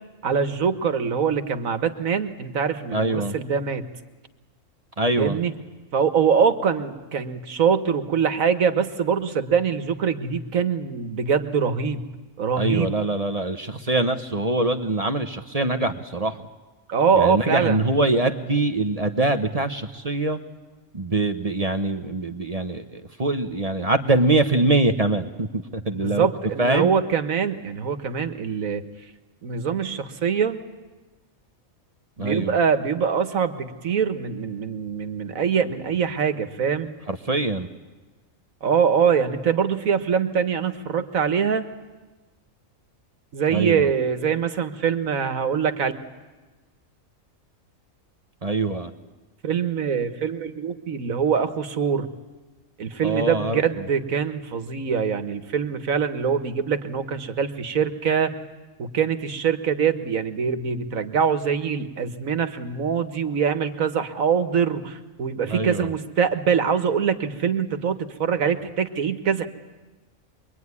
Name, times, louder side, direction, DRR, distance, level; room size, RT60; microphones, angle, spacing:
voice 1, 0.2-3.9 5.2-5.5 5.9-12.0 12.4-13.0 16.9-17.9 25.9-28.8 29.4-30.6 32.2-36.9 38.6-41.6 43.3-45.9 49.4-52.1 52.8-58.3 58.8-69.5, right 6 dB, 75° right, 10 dB, 1.8 m, -23 dB
voice 2, 2.9-3.3 5.0-5.4 12.6-16.5 17.1-20.4 20.9-26.3 26.6-26.9 32.2-32.6 37.1-37.7 43.5-43.9 48.4-48.9 53.0-53.9 65.5-65.9, right 2 dB, 30° right, 8 dB, 1.1 m, -24 dB
25.5 x 22.5 x 9.7 m, 1.2 s
omnidirectional pair, 1.4 m